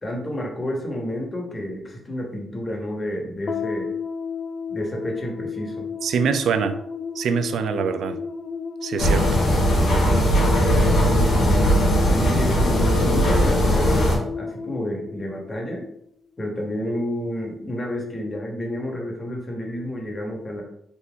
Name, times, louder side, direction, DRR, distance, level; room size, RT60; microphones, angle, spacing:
voice 1, 0.0-3.9 4.7-5.9 11.0-15.9 16.4-20.6, equal, 30° left, 1.4 m, -30 dB
sound 1, 3.5-16.0, left 5 dB, 60° left, 0.4 m, -33 dB
voice 2, 6.0-6.7 7.2-8.2 8.8-9.4, right 6 dB, 80° right, 0.3 m, -24 dB
sound 2, 9.0-14.2, equal, 80° left, 1.6 m, -19 dB
4.0 x 2.7 x 3.5 m
cardioid pair, 70°, 0 cm